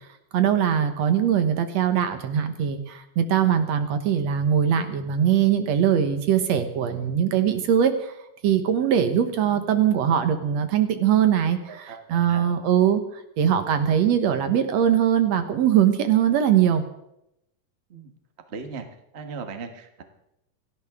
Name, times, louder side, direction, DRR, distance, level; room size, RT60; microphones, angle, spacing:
voice 1, 0.3-8.1 8.4-13.0 13.4-16.8, right 9 dB, 60° right, 8 dB, 2.2 m, -21 dB
voice 2, 11.7-12.5 17.9-18.1 18.5-18.8 19.1-20.0, right 5 dB, 75° right, 6 dB, 0.6 m, -38 dB
28.0 x 11.5 x 3.6 m, 0.82 s
omnidirectional pair, 3.7 m